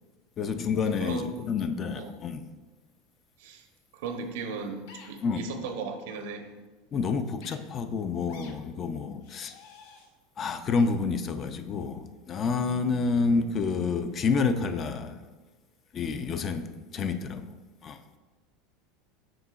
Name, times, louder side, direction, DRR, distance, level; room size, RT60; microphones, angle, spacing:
voice 1, 0.4-2.4 5.2-5.4 6.9-9.5 10.4-15.2 15.9-16.7 16.9-17.5 17.8-18.0, left 4 dB, 30° left, 10 dB, 0.3 m, -28 dB
voice 2, 1.0-1.3 2.0-2.2 3.4-3.6 3.9-6.5, right 4 dB, 80° right, 6 dB, 0.8 m, -36 dB
sound 1, 4.9-5.1 6.0-6.2 7.4-7.6 8.3-8.5 9.2-10.1 10.8-10.9, left 5 dB, 70° left, 0.8 m, -50 dB
7.7 x 5.4 x 2.4 m, 1.3 s
supercardioid pair, 150°, 0 cm